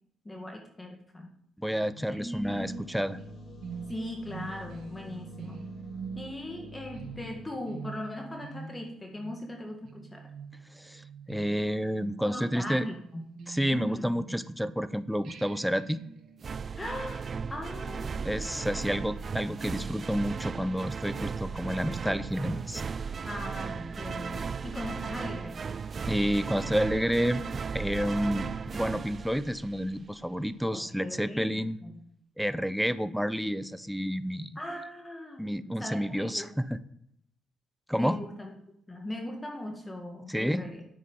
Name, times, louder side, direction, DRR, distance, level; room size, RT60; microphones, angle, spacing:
voice 1, 0.2-1.3 2.1-2.8 3.9-5.6 6.2-10.2 12.2-13.2 13.7-14.1 16.8-18.8 23.2-25.6 30.7-32.0 32.8-32.9 34.5-36.5 37.9-38.5 38.9-40.9, left 1 dB, 15° left, 2 dB, 1.9 m, -39 dB
voice 2, 1.6-3.2 10.7-12.9 13.5-16.0 18.2-22.8 26.1-27.4 27.7-31.8 32.4-34.6 35.4-36.8 37.9-38.2 40.3-40.7, equal, ahead, 14 dB, 0.7 m, -30 dB
sound 1, 1.7-14.8 15.2-21.1, right 5 dB, 65° right, 2.1 m, -47 dB
sound 2, 2.3-7.5, equal, 50° left, 2.2 m, -47 dB
sound 3, 16.4-30.1, right 5 dB, 40° right, 0.4 m, -36 dB
9.7 x 8.2 x 5.5 m, 0.72 s
cardioid pair, 90°, 0 cm